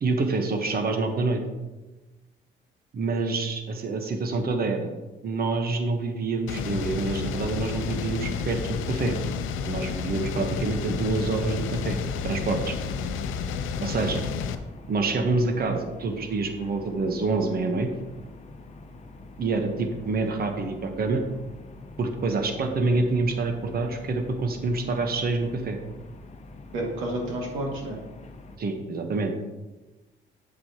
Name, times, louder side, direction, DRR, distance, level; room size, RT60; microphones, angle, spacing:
voice 1, 0.0-1.4 2.9-4.9 5.2-9.2 9.7-12.0 12.2-12.8 13.8-14.2 14.9-17.9 19.4-21.2 22.0-25.8 28.6-29.3, right 3 dB, 50° right, 5 dB, 1.2 m, -27 dB
sound 1, 6.5-14.6, left 6 dB, 90° left, 0.6 m, -31 dB
sound 2, 11.8-28.6, left 2 dB, 35° left, 0.9 m, -45 dB
voice 2, 26.7-28.0, right 1 dB, 85° right, -1 dB, 2.2 m, -30 dB
8.5 x 7.5 x 2.9 m, 1.1 s
cardioid pair, 90°, 20 cm